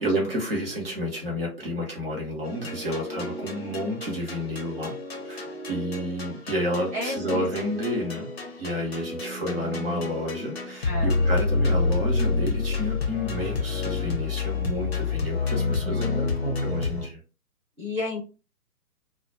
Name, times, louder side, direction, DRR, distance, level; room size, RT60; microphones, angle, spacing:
voice 1, 0.0-5.0 5.2-8.3 8.6-17.2, equal, 40° right, -2 dB, 0.8 m, -30 dB
sound 1, 2.4-17.1, left 3 dB, 40° left, 0.6 m, -29 dB
voice 2, 6.9-7.4 10.8-11.2 15.5-16.3 17.8-18.2, left 2 dB, 10° right, -16 dB, 0.6 m, -33 dB
2.2 x 2.0 x 2.8 m, 0.33 s
figure-of-eight pair, 135°, 47 cm